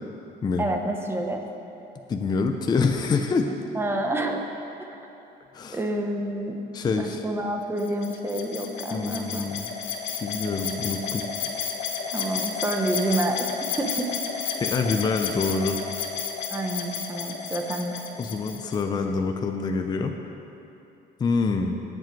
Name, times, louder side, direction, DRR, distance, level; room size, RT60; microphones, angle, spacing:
voice 1, 0.6-1.4 3.7-4.5 4.8-4.9 5.7-6.6 6.9-9.5 12.1-13.5 13.8-14.5 16.5-18.0, right 1 dB, 10° right, 3 dB, 0.8 m, -28 dB
voice 2, 2.1-3.5 5.5-5.8 6.7-7.2 8.9-9.7 10.2-11.2 14.6-15.8 18.2-20.1 21.2-21.8, left 4 dB, 20° left, 4 dB, 0.5 m, -26 dB
sound 1, 7.8-18.8, left 6 dB, 85° left, 1.3 m, -32 dB
17.0 x 7.6 x 4.6 m, 2.8 s
cardioid pair, 175°, 19 cm